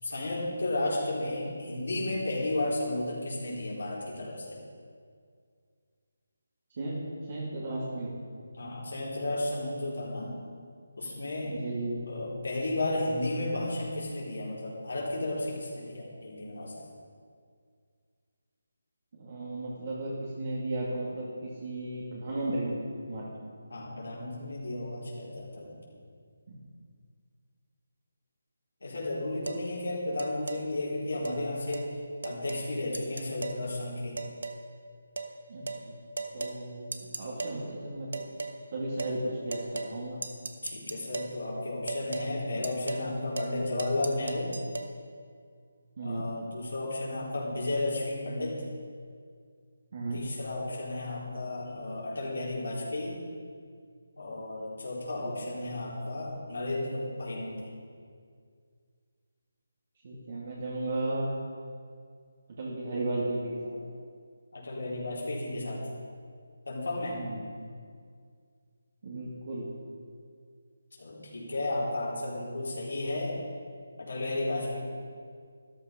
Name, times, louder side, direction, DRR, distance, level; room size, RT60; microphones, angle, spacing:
voice 1, 0.0-4.6 8.5-10.3 11.0-11.6 12.1-16.9 23.7-25.8 28.8-32.0 32.2-34.2 40.6-44.5 46.0-48.6 50.1-53.2 54.2-57.6 64.5-65.8 66.7-67.2 71.0-73.4 74.0-74.8, left 2 dB, 75° left, -5 dB, 4.3 m, -33 dB
voice 2, 7.3-8.1 11.5-12.1 19.1-23.3 26.5-26.6 35.5-36.0 36.3-38.2 38.7-39.6 39.9-40.2 46.0-46.3 49.9-50.2 55.2-55.5 60.0-61.3 62.6-63.8 67.2-67.4 69.0-69.7, right 2 dB, 45° right, -6 dB, 2.7 m, -34 dB
sound 1, 29.5-29.6 30.2-30.6 31.2-31.4 31.7-31.9 32.2-32.7 32.9-33.6 34.2-34.6 35.2-35.3 35.7-35.8 36.2-36.6 36.9-37.6 38.1-38.6 39.0-39.2 39.5-40.0 40.2-41.4 41.9-42.3 42.6-43.1 43.4-43.5 43.8-44.9, right 3 dB, 75° right, 1.2 m, -36 dB
13.0 x 11.5 x 5.4 m, 2.1 s
figure-of-eight pair, 160°, 0 cm